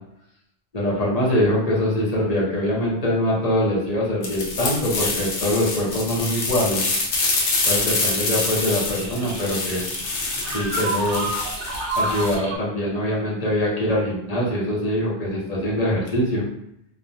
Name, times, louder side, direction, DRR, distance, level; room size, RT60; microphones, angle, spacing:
voice 1, 0.7-6.8 7.6-9.8 10.5-11.3 11.6-16.4, left 1 dB, 40° left, -5 dB, 0.7 m, -23 dB
sound 1, 4.2-12.4, left 3 dB, 90° left, 1.0 m, -26 dB
sound 2, 7.2-12.6, right 2 dB, 80° right, 0.9 m, -31 dB
3.0 x 2.2 x 2.5 m, 0.77 s
omnidirectional pair, 1.2 m